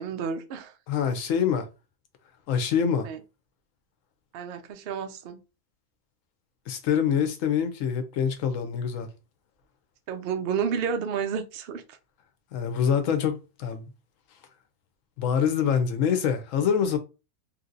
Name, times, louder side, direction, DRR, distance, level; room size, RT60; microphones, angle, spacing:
voice 1, 0.0-0.7 3.0-3.2 4.3-5.4 10.1-11.8, right 6 dB, 90° right, 0.5 m, -30 dB
voice 2, 0.9-1.7 2.5-3.1 6.7-9.1 12.5-13.9 15.2-17.0, left 7 dB, 65° left, 0.9 m, -25 dB
3.2 x 2.7 x 2.5 m
omnidirectional pair, 1.7 m